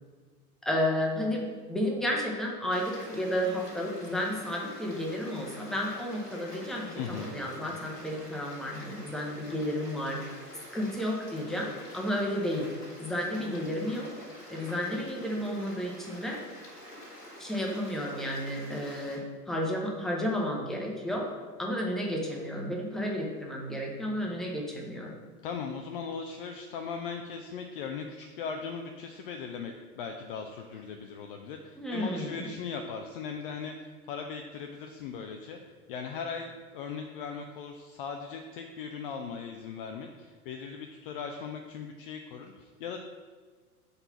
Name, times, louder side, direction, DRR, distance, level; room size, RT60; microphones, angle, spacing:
voice 1, 0.6-10.2 10.7-12.7 13.0-14.1 14.5-16.4 17.4-21.3 21.6-25.1 31.8-32.5, equal, ahead, -1 dB, 0.8 m, -32 dB
Stream, 2.7-19.2, left 1 dB, 90° left, 1.4 m, -47 dB
voice 2, 7.0-7.4 25.4-43.0, left 6 dB, 40° left, 4 dB, 0.4 m, -39 dB
4.4 x 4.0 x 5.6 m, 1.5 s
figure-of-eight pair, 95°, 46 cm